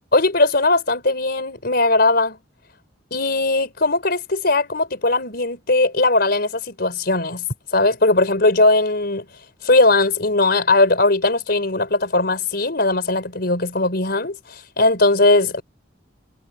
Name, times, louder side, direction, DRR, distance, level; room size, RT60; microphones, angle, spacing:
voice 1, 0.1-2.4 3.1-7.4 7.7-9.2 9.6-15.6, left 2 dB, 55° left, 4.8 m, -19 dB
head